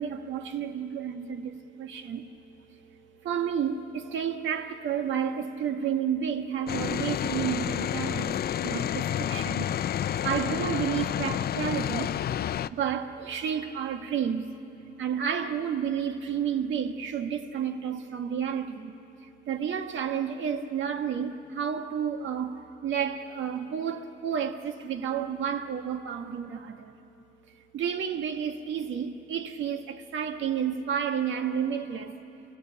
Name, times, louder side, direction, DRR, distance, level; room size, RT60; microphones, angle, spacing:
voice 1, 0.0-14.6 15.0-27.0 27.5-32.2, right 8 dB, 75° right, 1.5 m, -31 dB
sound 1, 6.7-12.7, left 10 dB, 50° left, 0.5 m, -29 dB
28.5 x 17.0 x 8.5 m
cardioid pair, 90°, 20 cm